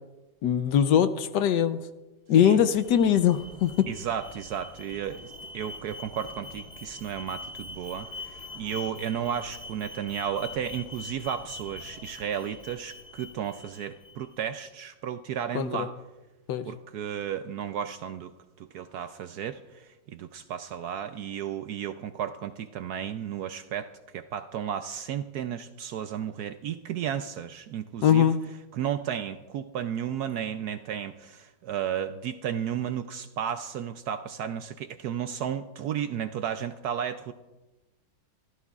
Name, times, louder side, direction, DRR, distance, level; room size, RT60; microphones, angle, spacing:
voice 1, 0.4-1.8 2.3-3.9 15.5-15.9 16.5-16.7 28.0-28.4, left 9 dB, 70° left, 11 dB, 1.2 m, -22 dB
Alarm, 2.4-14.4, left 3 dB, 35° left, 2.0 m, -43 dB
voice 2, 3.9-15.9 16.6-28.3 28.7-37.3, right 9 dB, 70° right, 9 dB, 1.0 m, -33 dB
25.5 x 14.5 x 2.4 m, 1.1 s
omnidirectional pair, 2.0 m